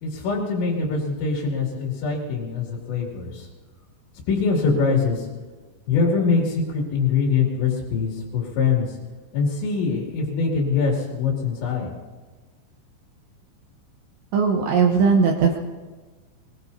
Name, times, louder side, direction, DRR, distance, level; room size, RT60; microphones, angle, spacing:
voice 1, 0.0-3.5 4.3-5.3 5.9-9.0 9.3-11.9, left 5 dB, 65° left, -3 dB, 4.6 m, -23 dB
voice 2, 14.3-15.6, right 5 dB, 75° right, 1 dB, 2.8 m, -18 dB
23.5 x 21.5 x 2.7 m, 1.4 s
omnidirectional pair, 5.8 m